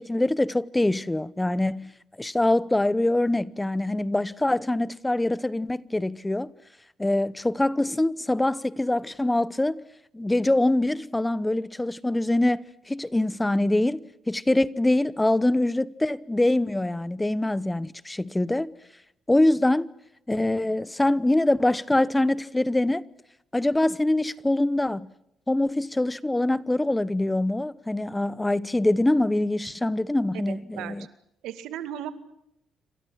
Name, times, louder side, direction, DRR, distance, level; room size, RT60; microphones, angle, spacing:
voice 1, 0.0-1.9 2.2-6.5 7.0-9.8 10.1-18.7 19.3-19.9 20.3-23.0 23.5-25.1 25.5-31.1, left 1 dB, 10° left, 0.9 m, -24 dB
voice 2, 30.3-31.0 31.4-32.1, right 11 dB, 90° right, 2.2 m, -36 dB
28.5 x 25.5 x 5.9 m
cardioid pair, 90°, 0 cm